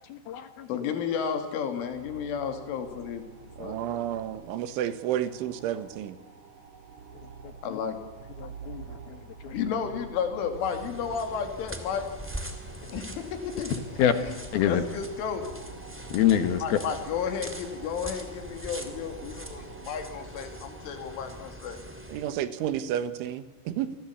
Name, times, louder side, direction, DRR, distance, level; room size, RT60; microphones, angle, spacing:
voice 1, 0.0-0.7 7.4-7.8 8.4-9.6 14.0-14.2 14.5-14.8 16.1-16.8, left 10 dB, 65° left, 9 dB, 2.8 m, -26 dB
voice 2, 0.7-3.3 3.6-4.0 7.6-8.0 9.5-12.1 12.9-13.8 14.1-14.3 14.7-15.5 16.6-21.8, left 7 dB, 85° left, 6 dB, 5.1 m, -32 dB
sound 1, 1.8-21.5, right 5 dB, 50° right, 2.7 m, -48 dB
voice 3, 3.6-6.2 22.1-24.0, right 11 dB, 80° right, 11 dB, 3.8 m, -31 dB
sound 2, 10.5-22.4, right 1 dB, 10° right, 0.7 m, -42 dB
29.0 x 21.0 x 8.7 m, 1.2 s
omnidirectional pair, 5.5 m